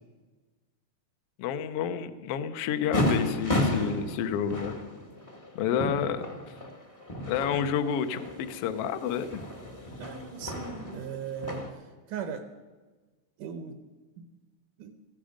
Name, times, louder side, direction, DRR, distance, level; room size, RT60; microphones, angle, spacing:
voice 1, 1.4-4.7 5.5-6.2 7.3-9.5, left 8 dB, 80° left, 9 dB, 1.4 m, -29 dB
sound 1, 2.9-11.7, left 1 dB, 30° left, 0.6 m, -33 dB
voice 2, 10.0-12.4 13.4-13.8 14.2-14.3 14.8-14.9, right 7 dB, 75° right, 8 dB, 2.2 m, -38 dB
16.0 x 15.0 x 5.1 m, 1.3 s
omnidirectional pair, 3.9 m